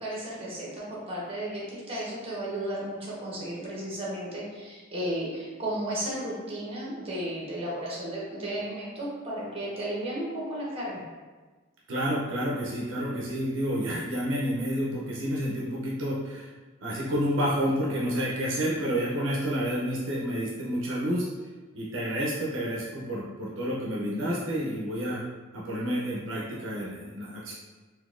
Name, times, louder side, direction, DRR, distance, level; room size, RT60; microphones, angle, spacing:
voice 1, 0.0-11.0, right 1 dB, 30° right, -5 dB, 1.0 m, -34 dB
voice 2, 11.9-16.5 16.8-21.3 21.7-25.2 25.5-27.5, equal, 70° right, -5 dB, 0.6 m, -29 dB
3.9 x 2.7 x 2.5 m, 1.3 s
head